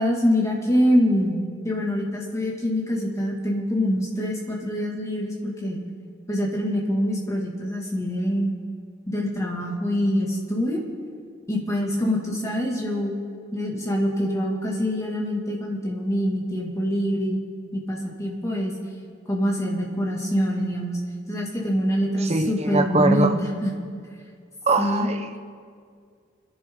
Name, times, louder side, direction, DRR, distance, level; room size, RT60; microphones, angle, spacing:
voice 1, 0.0-5.8 6.3-8.5 9.1-10.8 11.5-13.1 13.5-17.4 17.7-18.8 19.3-21.0 21.3-23.7 24.8-25.1, equal, 15° left, -2 dB, 2.3 m, -25 dB
voice 2, 22.2-23.3 24.7-25.4, right 3 dB, 35° right, 6 dB, 0.8 m, -22 dB
26.0 x 10.5 x 3.9 m, 2.1 s
head